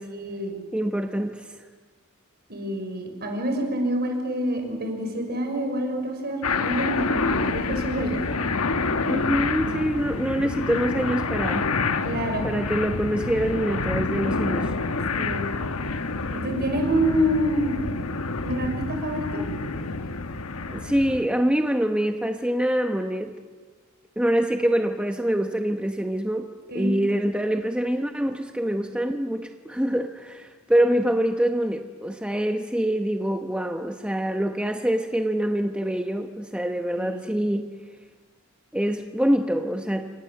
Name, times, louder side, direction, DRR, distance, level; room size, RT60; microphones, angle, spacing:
voice 1, 0.1-0.6 2.5-8.2 12.0-12.5 15.2-15.5 16.3-17.7 18.4-19.4 26.7-26.9 37.0-37.2, right 1 dB, 50° right, 4 dB, 6.2 m, -27 dB
voice 2, 0.7-1.6 9.1-11.7 12.4-14.7 20.7-23.3 24.2-26.5 26.7-37.7 38.7-40.1, equal, 5° right, 5 dB, 1.0 m, -25 dB
sound 1, 6.4-21.3, left 3 dB, 85° left, 1.3 m, -28 dB
29.0 x 26.0 x 7.9 m, 1.4 s
head